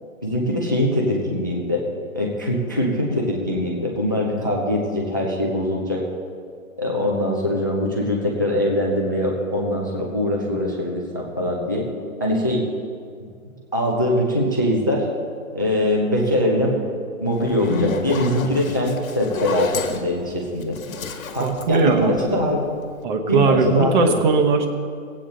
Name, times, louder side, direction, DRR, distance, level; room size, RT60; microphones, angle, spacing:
voice 1, 0.2-1.8 2.1-6.0 6.8-11.9 12.2-12.6 13.7-15.1 15.5-16.8 17.2-20.8 21.3-22.6 23.3-24.1, left 1 dB, 15° left, -1 dB, 0.4 m, -22 dB
Zipper (clothing), 17.3-22.6, left 5 dB, 75° left, 1.3 m, -30 dB
voice 2, 21.4-22.1 23.0-24.7, right 4 dB, 35° right, 5 dB, 1.1 m, -19 dB
16.5 x 8.5 x 3.9 m, 2.2 s
hypercardioid pair, 155°, 42 cm